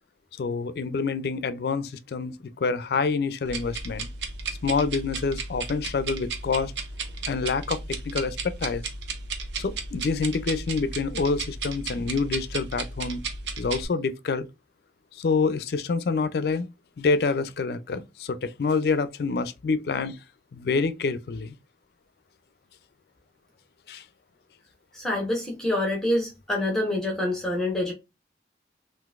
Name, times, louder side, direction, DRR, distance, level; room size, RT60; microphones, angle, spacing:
voice 1, 0.4-4.1 4.6-6.7 7.3-8.8 9.6-13.2 13.6-14.5 15.1-16.7 17.0-20.2 20.5-21.6 23.9-24.0, left 4 dB, 60° left, 0.4 m, -27 dB
sound 1, 3.4-13.8, right 4 dB, 75° right, 0.6 m, -34 dB
voice 2, 24.9-27.9, left 1 dB, 5° left, 0.8 m, -26 dB
3.8 x 2.5 x 2.4 m
head